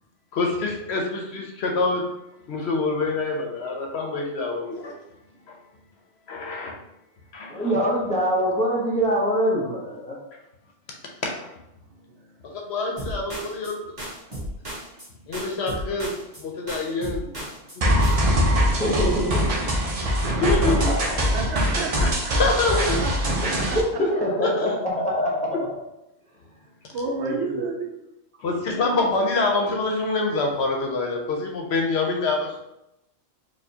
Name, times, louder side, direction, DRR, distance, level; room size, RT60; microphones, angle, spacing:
voice 1, 0.3-2.0 2.5-4.9 6.3-6.8 7.3-7.7 11.2-11.5 12.4-13.8 15.3-16.1 16.4-17.3 17.8-17.9 20.3-20.9 22.0-22.1 22.4-23.0 24.4-24.7 28.4-32.6, left 3 dB, 65° left, 1 dB, 0.8 m, -26 dB
voice 2, 7.5-10.2 18.6-19.7 20.2-20.3 20.6-21.2 23.4-25.7 27.2-27.7, equal, 10° left, -5 dB, 0.6 m, -25 dB
sound 1, 13.0-13.7 14.0-15.1 15.3-16.4 16.7-17.8 18.0-18.4, equal, 20° right, 1.0 m, -35 dB
sound 2, 17.8-23.8, equal, 45° right, 0.5 m, -22 dB
voice 3, 21.0-22.4 23.0-24.0 26.9-27.9 28.3-28.4, right 3 dB, 70° right, 0 dB, 0.9 m, -32 dB
4.4 x 2.3 x 2.7 m, 0.88 s
omnidirectional pair, 1.3 m